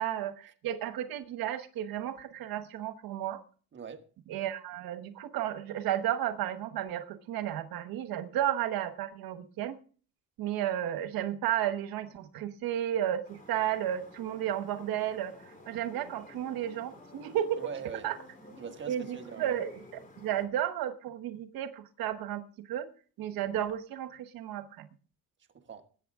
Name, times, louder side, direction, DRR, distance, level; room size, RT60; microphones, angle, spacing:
voice 1, 0.0-3.4 4.3-9.8 10.4-17.6 18.0-18.2 18.9-19.7 20.2-22.9 23.2-24.9, right 11 dB, 80° right, 1.2 m, -33 dB
voice 2, 3.7-4.0 17.6-18.1 18.6-19.5 25.5-25.8, right 6 dB, 35° right, 1.5 m, -42 dB
sound 1, 13.2-20.5, left 1 dB, 25° left, 4.1 m, -52 dB
20.5 x 8.7 x 3.6 m
cardioid pair, 140°, 35 cm